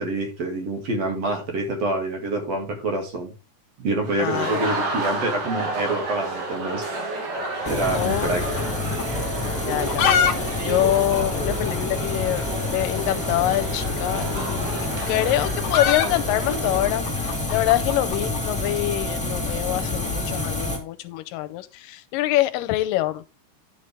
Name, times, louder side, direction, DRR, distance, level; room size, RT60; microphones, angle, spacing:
voice 1, 0.0-3.3 3.8-6.8 7.6-8.4, right 2 dB, 50° right, 3.1 m, -26 dB
sound 1, 4.0-16.8, right 2 dB, 70° right, 4.2 m, -31 dB
voice 2, 4.2-4.7 7.9-9.1 9.7-10.4 10.6-23.2, left 15 dB, 90° left, 2.3 m, -25 dB
sound 2, 7.4-8.7 9.0-9.1 9.6-10.4 10.6-10.7 10.9-11.0 11.6-11.7 12.9-13.1 14.2-18.5, left 8 dB, 65° left, 2.3 m, -25 dB
sound 3, 7.6-20.8, left 2 dB, 5° left, 1.5 m, -28 dB
10.5 x 6.7 x 3.5 m
omnidirectional pair, 3.9 m